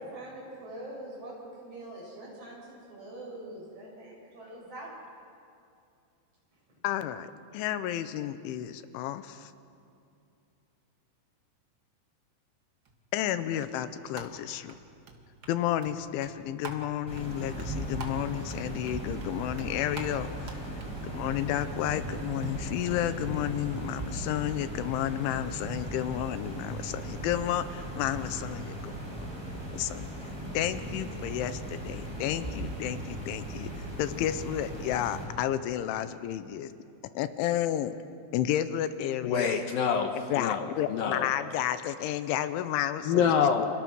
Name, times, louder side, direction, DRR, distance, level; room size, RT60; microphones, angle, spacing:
voice 1, 0.0-4.9, right 1 dB, 30° right, -3 dB, 8.2 m, -43 dB
voice 2, 6.8-9.5 13.1-14.7 15.5-20.7 21.0-29.3 29.7-30.1 30.5-33.7 34.0-36.7 37.1-37.9 38.3-39.5 40.3-43.4, left 11 dB, 90° left, 11 dB, 3.3 m, -31 dB
sound 1, 12.8-22.5, right 3 dB, 85° right, 1.0 m, -48 dB
sound 2, 17.1-35.2, right 1 dB, 5° right, 5.9 m, -38 dB
voice 3, 39.2-41.3 43.0-43.7, left 7 dB, 70° left, 5 dB, 2.3 m, -26 dB
29.5 x 27.5 x 6.3 m, 2.6 s
omnidirectional pair, 5.4 m